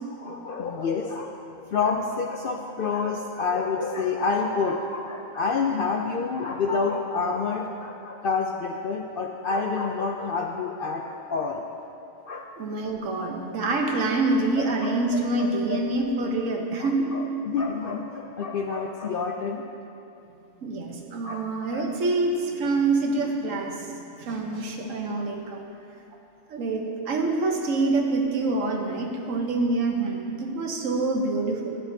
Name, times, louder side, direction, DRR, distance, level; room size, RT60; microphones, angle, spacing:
voice 1, 0.1-1.3 1.7-11.6 12.2-12.5 14.6-14.9 15.4-15.8 16.8-19.6 21.2-21.9, left 4 dB, 65° left, 2 dB, 0.5 m, -28 dB
voice 2, 12.6-17.1 20.6-25.6 26.5-31.8, right 3 dB, 75° right, 2 dB, 1.3 m, -26 dB
11.5 x 10.0 x 2.7 m, 2.8 s
omnidirectional pair, 1.3 m